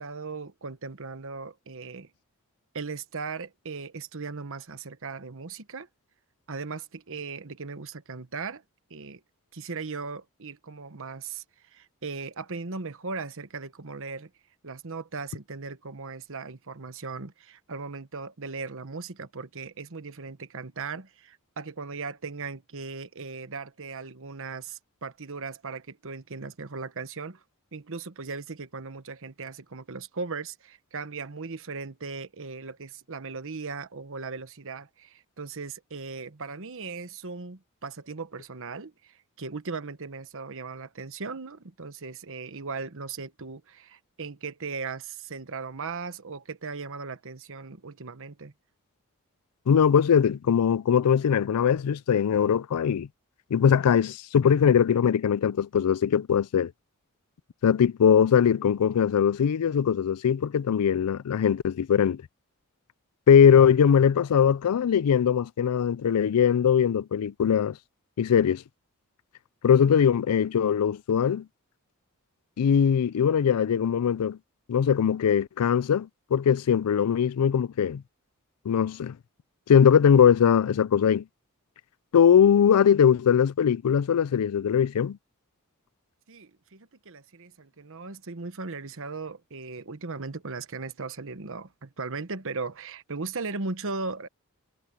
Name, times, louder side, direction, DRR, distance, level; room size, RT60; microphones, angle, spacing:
voice 1, 0.0-2.1 2.7-5.9 6.5-8.6 8.9-9.2 9.5-14.3 14.6-27.4 27.7-48.5 86.3-94.3, right 4 dB, 65° right, 1.2 m, -38 dB
voice 2, 49.7-53.1 53.5-56.7 57.6-62.2 63.3-67.8 68.2-68.6 69.6-71.5 72.6-74.4 74.7-78.0 78.7-79.2 79.7-81.2 82.1-85.2, left 8 dB, 90° left, 0.4 m, -21 dB
head